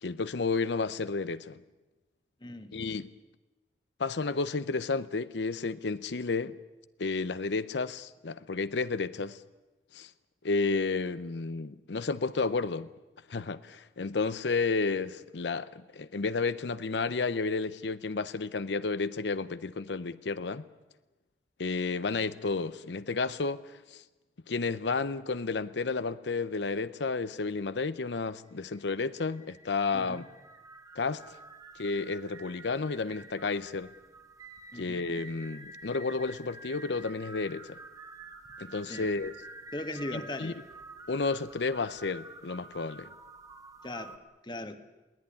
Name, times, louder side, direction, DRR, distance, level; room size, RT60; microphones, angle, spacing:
voice 1, 0.0-1.6 2.7-3.1 4.0-6.5 7.0-9.4 9.9-10.1 10.4-12.9 13.3-20.6 21.6-24.0 24.5-30.3 31.0-31.2 31.8-33.9 34.7-37.8 38.6-39.3 40.1-40.5 41.1-43.1, left 4 dB, 85° left, 0.7 m, -31 dB
voice 2, 2.4-2.8 29.9-30.2 34.7-35.0 38.9-39.1 39.7-40.6 43.8-44.8, left 1 dB, 25° left, 1.4 m, -39 dB
sound 1, 28.4-44.2, right 3 dB, 20° right, 1.7 m, -49 dB
22.0 x 17.5 x 9.8 m
head